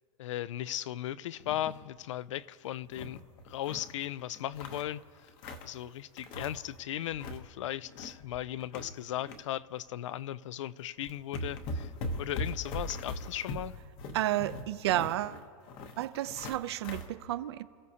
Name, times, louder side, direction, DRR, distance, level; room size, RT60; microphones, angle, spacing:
voice 1, 0.2-3.2 3.4-5.0 5.6-11.9 12.2-13.8, left 12 dB, 60° left, 0.4 m, -37 dB
sound 1, 1.4-1.8 2.2-2.3 2.6-3.9 4.3-5.8 6.2-6.7 7.0-7.4 7.8-9.4 9.8-9.9 10.6-10.7 11.0-17.1, left 1 dB, 25° left, 0.9 m, -40 dB
voice 2, 14.1-15.4 16.0-17.6, right 14 dB, 50° right, 0.5 m, -31 dB
27.5 x 15.5 x 2.8 m
supercardioid pair, 180°, 18 cm